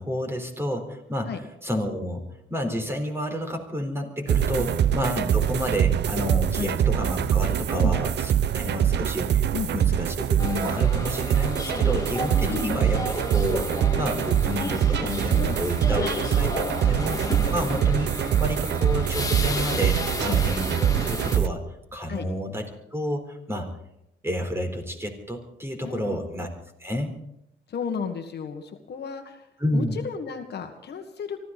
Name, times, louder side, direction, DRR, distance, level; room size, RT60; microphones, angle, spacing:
voice 1, 0.0-1.3 1.6-2.2 2.5-8.1 8.5-21.6 21.9-23.7 24.2-26.5 26.8-27.2 29.6-30.0, equal, 10° right, 3 dB, 4.1 m, -30 dB
sound 1, 4.3-21.5, right 10 dB, 60° right, 0.8 m, -24 dB
sound 2, 10.4-21.4, left 3 dB, 15° left, 2.1 m, -33 dB
voice 2, 25.8-26.2 27.7-29.5 29.7-31.4, left 6 dB, 55° left, 6 dB, 1.7 m, -33 dB
24.5 x 14.0 x 4.2 m, 0.79 s
cardioid pair, 90°, 20 cm